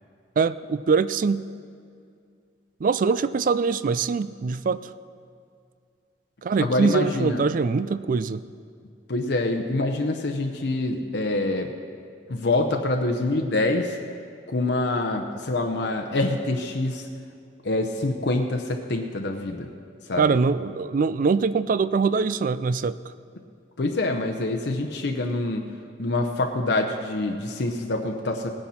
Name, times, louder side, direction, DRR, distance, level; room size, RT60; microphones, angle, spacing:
voice 1, 0.4-1.4 2.8-4.9 6.4-8.4 20.2-23.1, right 5 dB, 50° right, 15 dB, 0.4 m, -23 dB
voice 2, 6.6-7.4 9.1-11.7 12.3-14.0 14.5-17.1 17.6-19.7 20.1-20.3 23.8-25.7 26.0-28.5, left 2 dB, 65° left, 4 dB, 0.8 m, -25 dB
17.5 x 10.0 x 4.3 m, 2.3 s
head